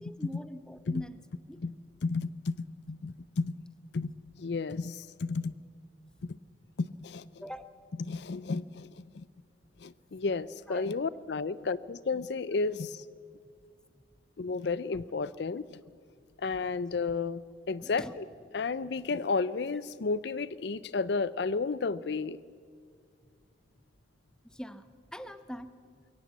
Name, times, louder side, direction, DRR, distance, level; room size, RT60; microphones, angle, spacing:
voice 1, 0.0-1.2 1.5-1.6 6.1-6.2 7.4-7.6 10.7-10.8 17.8-18.1 24.4-25.7, equal, 5° left, 11 dB, 0.8 m, -43 dB
voice 2, 2.0-3.6 3.9-4.1 4.4-5.5 6.2-6.4 6.8-7.3 8.1-9.2 9.8-13.0 14.4-15.8 16.4-17.4 17.7-18.2 18.5-22.4, left 4 dB, 60° left, 17 dB, 0.5 m, -32 dB
22.5 x 17.0 x 8.2 m, 2.1 s
head